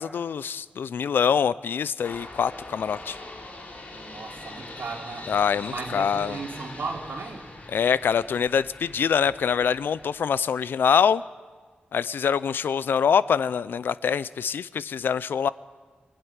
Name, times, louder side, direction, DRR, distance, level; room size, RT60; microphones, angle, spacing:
voice 1, 0.0-3.2 5.3-6.4 7.7-11.2 11.9-15.5, left 7 dB, 90° left, 18 dB, 0.5 m, -24 dB
sound 1, 2.0-10.1, left 2 dB, 50° left, 3.6 m, -42 dB
voice 2, 3.9-5.3 5.7-7.5, right 4 dB, 80° right, 0 dB, 3.1 m, -36 dB
25.0 x 11.5 x 9.7 m, 1.5 s
wide cardioid pair, 135°, 3 cm